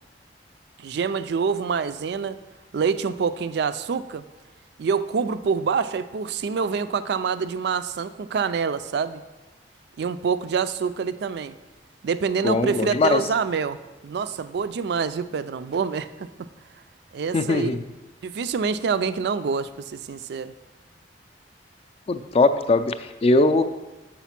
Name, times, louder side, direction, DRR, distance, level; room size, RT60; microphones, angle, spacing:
voice 1, 0.8-2.4 2.7-4.2 4.8-9.2 10.0-11.5 12.0-13.8 14.0-16.5 17.1-17.7 18.2-20.5, right 5 dB, 65° right, 13 dB, 0.4 m, -26 dB
voice 2, 12.4-13.2 17.3-17.8 22.1-23.6, left 2 dB, 35° left, 10 dB, 0.4 m, -20 dB
7.1 x 5.0 x 5.8 m, 1.2 s
head